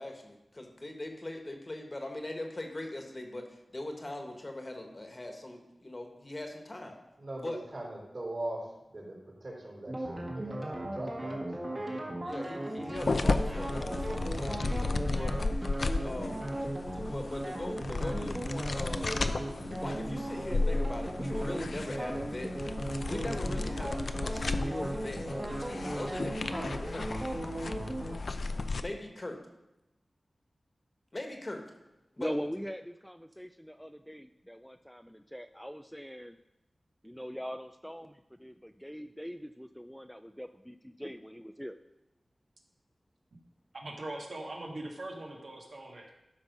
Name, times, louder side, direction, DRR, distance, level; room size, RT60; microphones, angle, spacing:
voice 1, 0.0-7.0 7.4-7.6 12.2-15.3 16.0-16.4 16.9-19.1 19.8-22.5 22.9-27.1 28.8-29.4 31.1-31.6 32.2-32.3, left 1 dB, 30° left, 3 dB, 1.4 m, -40 dB
voice 2, 7.2-8.6 8.9-12.2, right 1 dB, 50° right, -3 dB, 3.7 m, -41 dB
sound 1, 9.9-28.2, right 1 dB, 35° right, 1.7 m, -37 dB
sound 2, 13.0-28.8, left 3 dB, 65° left, 0.5 m, -34 dB
voice 3, 32.2-36.4 37.0-41.8 45.7-46.1, equal, ahead, 8 dB, 0.3 m, -42 dB
voice 4, 43.7-46.1, right 1 dB, 70° right, -1 dB, 1.7 m, -41 dB
12.5 x 5.3 x 5.3 m, 0.94 s
wide cardioid pair, 100°, 0 cm